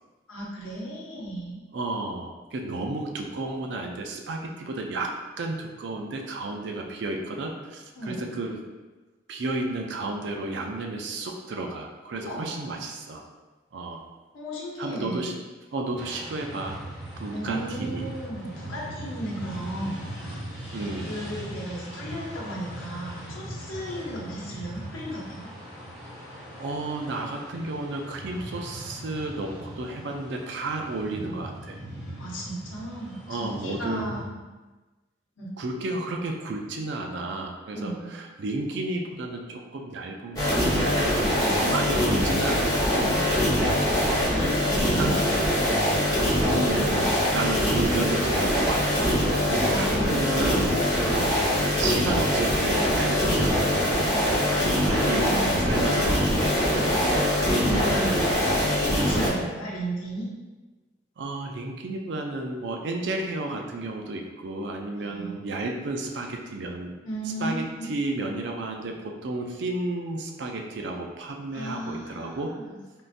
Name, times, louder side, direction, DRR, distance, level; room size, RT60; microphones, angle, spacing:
voice 1, 0.3-1.6 8.0-8.3 12.1-12.7 14.3-15.4 17.3-20.7 21.1-25.5 32.2-34.3 35.4-35.5 37.7-38.1 41.4-42.2 44.2-45.7 49.6-50.7 51.0-51.3 55.1-55.8 57.4-58.4 58.8-60.3 65.0-65.3 67.0-67.9 71.5-73.0, right 1 dB, 90° left, -4 dB, 0.9 m, -35 dB
voice 2, 1.7-8.6 9.3-13.2 13.7-14.0 14.8-15.3 15.7-16.8 17.2-18.1 20.7-21.1 26.6-31.8 33.3-34.1 35.6-41.2 41.5-43.3 44.8-45.2 46.4-50.7 51.1-54.4 54.8-57.1 61.2-66.9 67.2-72.5, right 2 dB, 65° right, 2 dB, 0.4 m, -32 dB
sound 1, 16.0-34.2, equal, 5° right, 1.1 m, -40 dB
sound 2, 40.4-59.3, equal, 20° left, 0.9 m, -23 dB
3.6 x 2.6 x 2.5 m, 1.2 s
head